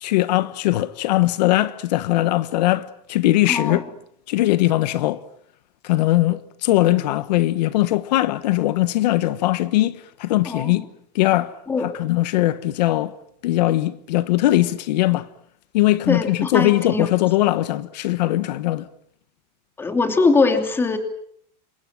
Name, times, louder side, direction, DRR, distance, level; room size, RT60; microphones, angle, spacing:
voice 1, 0.0-3.8 4.3-5.2 5.8-10.8 11.1-11.6 11.8-13.1 13.4-15.3 15.7-18.9, left 16 dB, 80° left, 1.3 m, -20 dB
voice 2, 3.5-3.8 10.5-10.8 11.7-11.9 16.1-17.1 19.8-21.0, left 3 dB, 10° left, 2.8 m, -21 dB
28.0 x 26.0 x 7.5 m
supercardioid pair, 175°, 21 cm